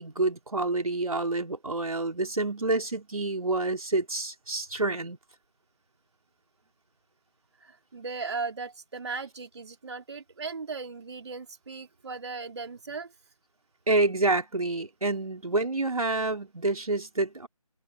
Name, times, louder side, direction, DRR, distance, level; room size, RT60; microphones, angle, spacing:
voice 1, 0.0-5.2 13.9-17.5, right 2 dB, 70° right, 3.6 m, -28 dB
voice 2, 7.6-13.1, right 4 dB, 45° right, 2.5 m, -37 dB
figure-of-eight pair, 160°, 19 cm